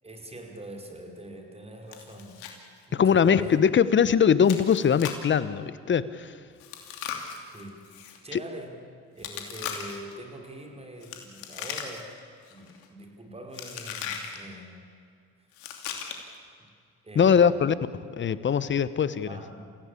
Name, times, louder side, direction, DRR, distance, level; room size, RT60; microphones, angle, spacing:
voice 1, 0.0-2.4 2.9-3.6 7.5-8.8 9.1-12.2 12.5-14.8 16.6-16.7 17.0-17.8 19.2-19.6, right 1 dB, 20° right, 3 dB, 5.4 m, -43 dB
Chewing mastication, 1.9-2.6 2.8-2.9 3.4-3.6 4.4-5.3 6.6-8.2 9.2-10.1 11.0-12.2 12.5-12.8 13.5-14.4 15.5-16.4, left 8 dB, 85° left, 2.9 m, -38 dB
voice 2, 2.9-6.3 8.3-8.4 17.1-17.7 18.2-19.3, left 7 dB, 35° left, 15 dB, 1.2 m, -21 dB
27.5 x 16.5 x 8.7 m, 2.3 s
supercardioid pair, 70°, 31 cm